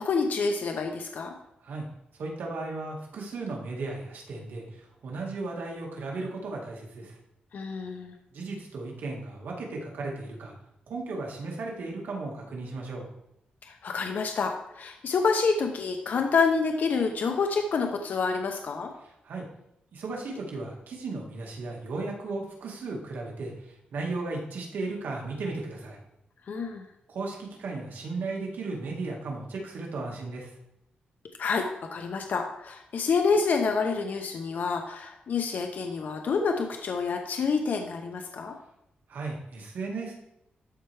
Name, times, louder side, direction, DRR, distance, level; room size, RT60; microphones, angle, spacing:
voice 1, 0.0-1.3 7.5-8.1 13.6-18.9 26.5-26.8 31.4-38.5, left 4 dB, 60° left, 3 dB, 0.8 m, -28 dB
voice 2, 2.1-7.2 8.3-10.5 10.9-13.1 19.0-19.4 19.9-26.0 27.1-30.5 39.1-40.1, right 3 dB, 75° right, -1 dB, 2.0 m, -35 dB
12.5 x 4.4 x 3.4 m, 0.82 s
cardioid pair, 95°, 3 cm